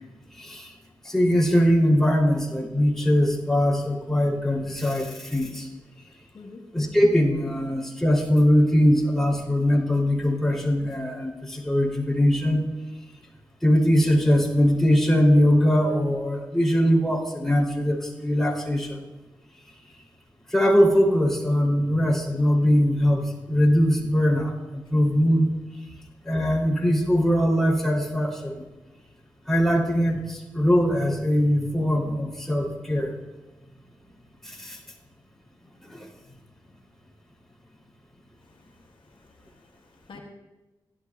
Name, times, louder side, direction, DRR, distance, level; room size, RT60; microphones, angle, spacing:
voice 1, 0.4-0.7 1.0-5.7 6.7-12.6 13.6-19.0 20.5-25.5 26.2-28.5 29.5-33.1 34.4-34.8 35.9-36.1, equal, 5° left, -3 dB, 3.0 m, -21 dB
voice 2, 38.5-40.2, left 4 dB, 70° left, 1 dB, 1.3 m, -49 dB
16.5 x 11.5 x 2.4 m, 1.1 s
cardioid pair, 60°, 9 cm